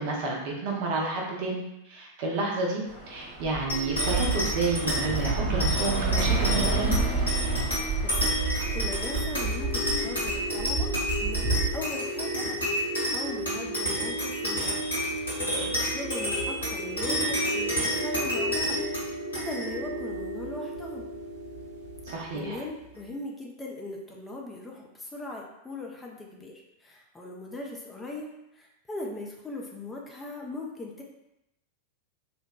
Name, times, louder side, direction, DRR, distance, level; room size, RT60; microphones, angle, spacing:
voice 1, 0.0-7.0 22.1-22.6, right 3 dB, 50° right, -2 dB, 0.5 m, -30 dB
Bus / Traffic noise roadway noise, 2.9-11.7, right 3 dB, 15° right, 0.7 m, -29 dB
sound 1, 3.7-22.5, equal, 80° left, 1.2 m, -30 dB
voice 2, 8.0-8.4 8.7-10.9 11.2-14.8 15.3-18.8 19.3-21.1 22.3-31.0, left 2 dB, 10° left, -1 dB, 0.4 m, -39 dB
2.6 x 2.1 x 2.3 m, 0.88 s
figure-of-eight pair, 90°, 0 cm